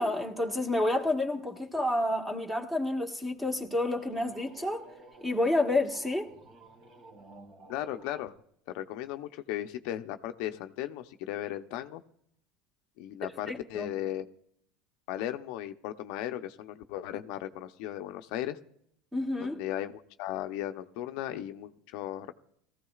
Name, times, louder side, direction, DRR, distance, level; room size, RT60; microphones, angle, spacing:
voice 1, 0.0-4.8 5.2-6.3 13.5-13.9 19.1-19.6, left 1 dB, 10° right, 1.6 m, -29 dB
sound 1, 3.4-8.3, right 2 dB, 35° right, 2.3 m, -52 dB
voice 2, 7.7-8.3 8.7-12.0 13.0-14.3 15.1-18.6 19.4-22.3, left 12 dB, 70° left, 0.7 m, -36 dB
18.5 x 15.0 x 2.4 m
supercardioid pair, 130°, 0 cm